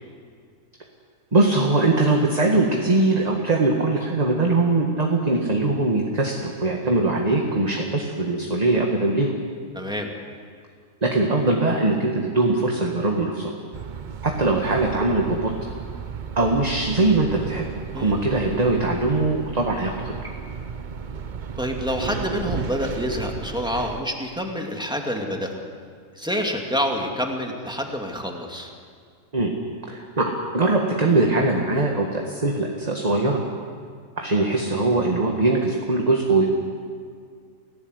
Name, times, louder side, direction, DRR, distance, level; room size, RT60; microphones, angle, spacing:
voice 1, 1.3-9.3 11.0-13.5 14.2-15.5 16.4-17.7 17.9-20.3 29.3-29.5 29.9-33.4 34.2-36.5, right 2 dB, 25° right, 1 dB, 1.8 m, -21 dB
voice 2, 9.7-10.1 17.9-18.3 21.6-25.6 26.1-28.7, equal, 5° right, 2 dB, 2.5 m, -27 dB
sound 1, 13.7-24.0, right 6 dB, 40° right, 0.7 m, -34 dB
29.5 x 17.0 x 8.1 m, 2.1 s
omnidirectional pair, 1.7 m